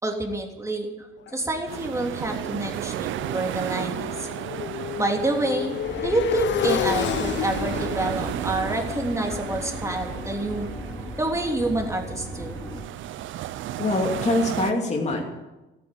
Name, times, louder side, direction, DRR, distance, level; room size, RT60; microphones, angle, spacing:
voice 1, 0.0-1.1 1.3-4.3 5.0-10.7 11.2-12.6, right 2 dB, 15° right, 2 dB, 3.3 m, -27 dB
Motorcycle, 1.3-11.1, left 11 dB, 65° left, 0.7 m, -32 dB
sound 1, 1.7-14.7, right 12 dB, 80° right, 0.6 m, -34 dB
sound 2, 5.8-12.8, equal, 10° left, 2.3 m, -37 dB
voice 2, 13.8-15.3, left 2 dB, 35° left, 0 dB, 3.0 m, -24 dB
14.5 x 9.2 x 9.9 m, 1.0 s
cardioid pair, 90°, 20 cm